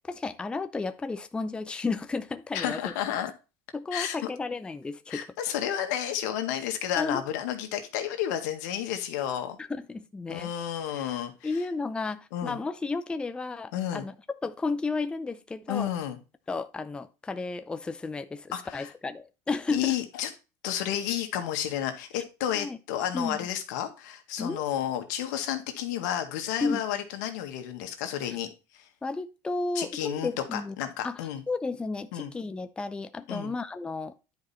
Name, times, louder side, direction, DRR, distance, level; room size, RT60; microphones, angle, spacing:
voice 1, 0.1-2.8 3.7-5.3 7.0-7.2 9.6-10.5 10.9-11.1 11.4-14.1 14.4-15.9 16.5-20.0 22.6-22.8 23.1-23.4 24.4-24.6 26.6-26.8 29.0-30.8 31.0-31.2 31.5-34.3, left 3 dB, 10° left, 0.5 m, -33 dB
voice 2, 2.5-3.3 3.9-4.2 5.1-9.6 10.3-11.6 12.3-12.6 13.7-14.1 15.7-16.2 18.5-18.9 19.7-20.3 20.6-28.5 28.7-28.8 29.7-31.4 32.1-32.3 33.3-33.5, left 10 dB, 85° left, 1.8 m, -31 dB
10.5 x 4.9 x 4.3 m
supercardioid pair, 135°, 9 cm